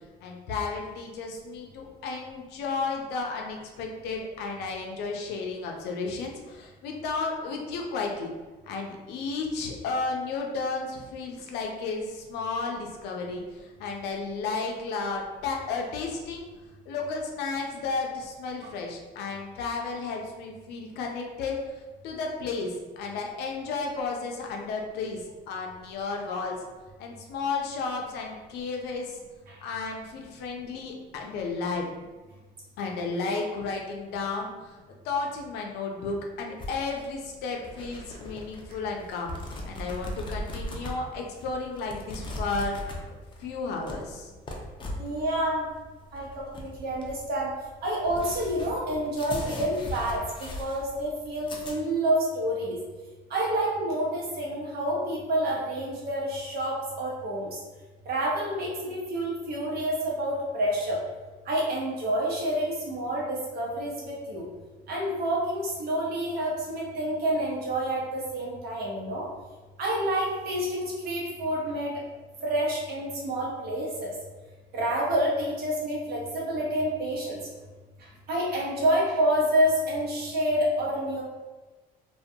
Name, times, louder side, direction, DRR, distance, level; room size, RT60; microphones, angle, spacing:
voice 1, 0.2-8.3 8.7-16.5 16.9-21.6 22.0-26.6 27.0-29.2 29.6-31.9 32.8-34.7 35.0-39.3 39.6-42.8 43.4-44.3, left 4 dB, 80° left, 1 dB, 0.5 m, -33 dB
sound 1, 36.6-51.7, left 1 dB, 30° left, 0.4 m, -39 dB
voice 2, 45.0-45.6 46.1-47.5 47.8-50.2 50.6-52.8 53.3-57.6 58.1-61.0 61.5-64.4 64.9-69.3 69.8-71.9 72.4-74.1 74.7-77.4 78.3-81.2, right 1 dB, 65° right, -4 dB, 0.9 m, -28 dB
2.3 x 2.2 x 2.7 m, 1.2 s
cardioid pair, 110°, 17 cm